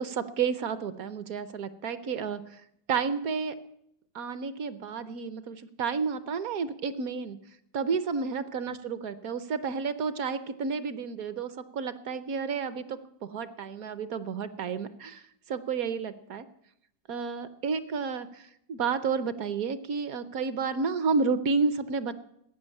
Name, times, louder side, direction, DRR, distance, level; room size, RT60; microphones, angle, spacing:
voice 1, 0.0-2.4 2.9-3.5 4.1-7.4 7.7-15.2 15.5-16.4 17.1-22.1, right 5 dB, 60° right, 13 dB, 1.0 m, -31 dB
14.5 x 9.0 x 9.6 m, 0.74 s
omnidirectional pair, 2.0 m